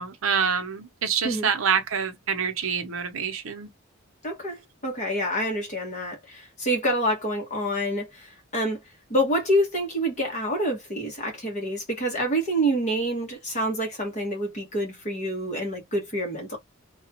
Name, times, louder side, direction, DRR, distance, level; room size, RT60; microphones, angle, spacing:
voice 1, 0.0-3.7, right 6 dB, 75° right, 0.8 m, -26 dB
voice 2, 4.2-8.3 8.5-8.8 9.1-16.6, right 1 dB, 35° left, 1.3 m, -27 dB
2.7 x 2.3 x 2.9 m
head